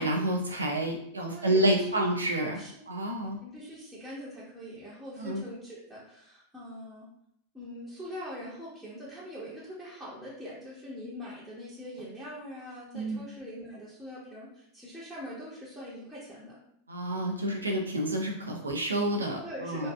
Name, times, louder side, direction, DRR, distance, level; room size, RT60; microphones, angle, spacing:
voice 1, 0.0-2.6 2.9-3.4 5.2-5.4 12.9-13.2 16.9-19.9, right 1 dB, 85° right, 1 dB, 0.5 m, -29 dB
voice 2, 1.2-2.0 2.6-2.7 3.4-7.1 7.5-16.6 19.4-19.9, equal, 5° right, -10 dB, 0.8 m, -43 dB
2.6 x 2.3 x 2.3 m, 0.73 s
hypercardioid pair, 95°, 0 cm